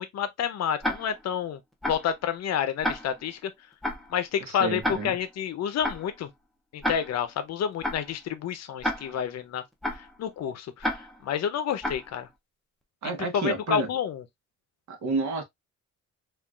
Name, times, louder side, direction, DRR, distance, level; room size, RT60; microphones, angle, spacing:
voice 1, 0.0-1.6 1.9-3.5 4.1-6.3 6.7-9.6 10.2-11.0 11.2-12.3 13.3-14.2, left 8 dB, 60° left, 0.6 m, -29 dB
Tick-tock, 0.8-1.3 1.8-2.2 2.8-3.3 3.8-4.2 4.8-5.3 5.8-6.2 6.8-7.3 7.8-8.2 8.8-9.3 9.8-10.2 10.8-11.3 11.8-12.2, left 1 dB, ahead, 0.4 m, -31 dB
voice 2, 4.5-5.2 13.0-13.9 14.9-15.4, right 3 dB, 70° right, 1.0 m, -30 dB
3.7 x 2.4 x 2.3 m
cardioid pair, 160°, 30 cm